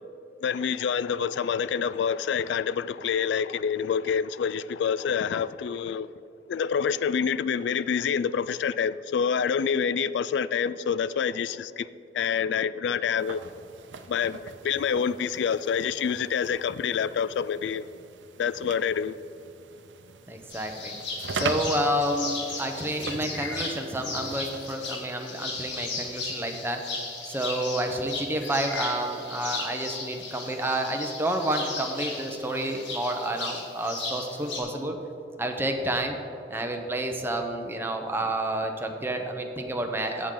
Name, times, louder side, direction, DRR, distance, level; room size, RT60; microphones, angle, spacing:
voice 1, 0.4-6.1 6.5-11.9 12.1-13.4 14.1-17.9 18.4-19.1, left 7 dB, 70° left, 0.3 m, -27 dB
sound 1, 13.2-24.8, right 4 dB, 90° right, 0.6 m, -40 dB
voice 2, 20.3-21.0 21.3-26.8 27.2-35.0 35.4-36.2 36.5-40.3, right 1 dB, 15° right, 0.8 m, -29 dB
sound 2, 20.5-34.6, left 3 dB, 90° left, 1.9 m, -36 dB
16.0 x 6.5 x 3.8 m
head